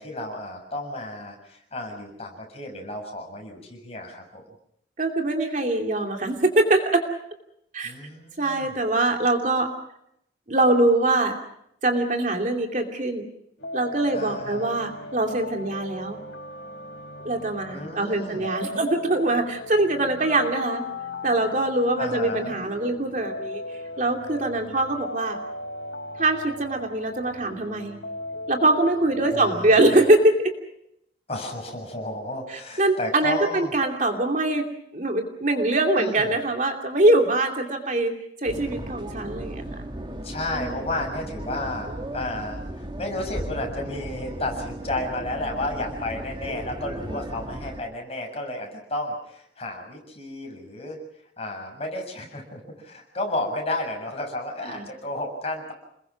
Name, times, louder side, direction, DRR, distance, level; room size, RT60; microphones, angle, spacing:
voice 1, 0.0-4.4 7.8-8.7 14.1-14.7 17.7-18.5 22.0-22.6 29.2-30.0 31.3-33.7 36.0-36.3 40.2-51.0 51.4-55.7, left 1 dB, 35° left, 2 dB, 7.1 m, -32 dB
voice 2, 5.0-6.8 7.7-7.9 8.4-9.7 10.5-11.3 11.8-13.3 13.7-16.2 17.2-20.8 21.2-23.6 24.0-25.4 26.2-28.0 28.5-30.5 32.5-34.6 34.9-38.1 38.4-39.9 40.5-40.9 54.6-54.9, right 2 dB, 45° right, 3 dB, 2.8 m, -23 dB
sound 1, 13.6-30.2, left 2 dB, 75° left, 3.6 m, -38 dB
sound 2, 38.5-47.8, right 1 dB, 25° right, 1.8 m, -36 dB
28.5 x 21.5 x 6.0 m, 0.75 s
head